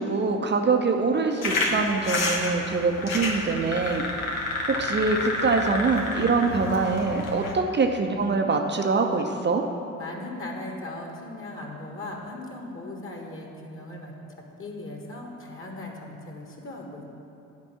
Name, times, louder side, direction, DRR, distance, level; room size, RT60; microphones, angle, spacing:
voice 1, 0.0-4.4 4.7-9.7, right 4 dB, 25° right, 4 dB, 0.8 m, -24 dB
sound 1, 1.4-7.5, left 2 dB, 80° left, 1.1 m, -29 dB
voice 2, 10.0-17.0, left 2 dB, 30° left, 1 dB, 1.7 m, -38 dB
10.5 x 5.3 x 7.4 m, 2.8 s
figure-of-eight pair, 50°, 41 cm